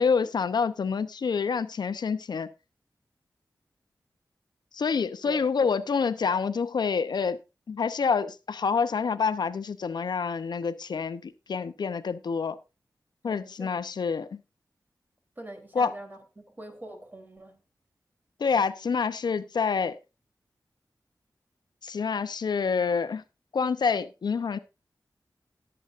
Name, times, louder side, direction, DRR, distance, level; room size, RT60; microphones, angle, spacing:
voice 1, 0.0-2.5 4.7-7.4 7.7-12.6 13.2-14.4 15.7-15.9 18.4-20.0 21.8-23.2 23.5-24.6, left 5 dB, 80° left, 0.7 m, -27 dB
voice 2, 13.2-13.8 15.4-17.6, right 1 dB, 25° right, 3.3 m, -43 dB
18.5 x 8.0 x 2.5 m
wide cardioid pair, 75°, 7 cm